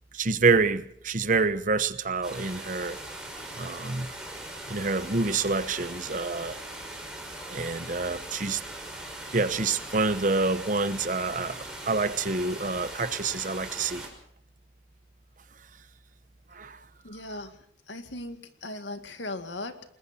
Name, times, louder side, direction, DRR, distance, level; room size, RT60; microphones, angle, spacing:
voice 1, 0.1-3.0 3.6-4.1 4.7-6.6 7.5-8.6 9.3-14.1 16.5-16.8, right 3 dB, 45° right, 1.0 m, -27 dB
sound 1, 2.2-14.1, right 1 dB, 5° right, 5.7 m, -40 dB
voice 2, 17.0-17.6 17.9-20.0, left 2 dB, 90° left, 2.2 m, -38 dB
29.0 x 21.0 x 4.4 m
head